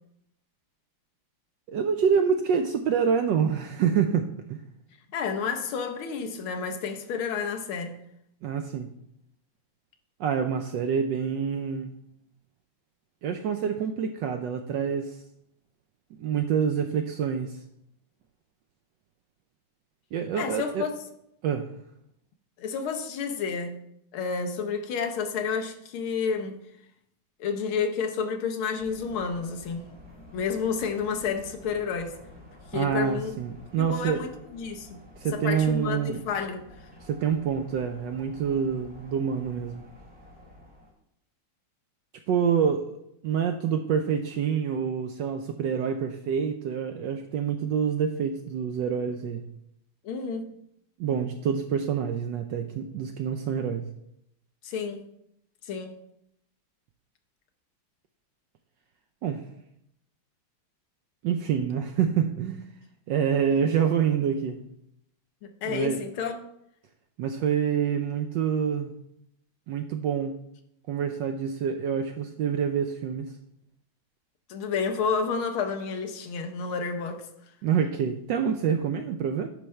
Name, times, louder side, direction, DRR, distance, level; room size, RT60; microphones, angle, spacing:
voice 1, 1.7-4.6 8.4-8.9 10.2-11.9 13.2-15.2 16.2-17.6 20.1-20.8 21.4-21.7 32.7-34.3 35.2-36.2 37.0-39.8 42.3-43.0 43.2-49.4 51.0-53.9 59.2-59.5 61.2-62.7 63.1-64.6 65.6-66.0 67.2-68.9 69.7-70.4 70.9-73.3 77.6-79.5, right 7 dB, 75° right, 1.0 m, -27 dB
voice 2, 5.1-8.0 20.4-20.9 22.6-23.8 24.1-26.6 27.4-29.9 30.3-32.2 32.7-33.3 33.8-35.0 35.3-36.6 50.0-50.5 54.6-55.0 55.6-56.0 65.4-66.4 74.5-77.3, left 5 dB, 75° left, 1.7 m, -30 dB
sound 1, 28.8-40.9, left 1 dB, 5° right, 2.0 m, -50 dB
9.9 x 3.4 x 6.3 m
omnidirectional pair, 2.4 m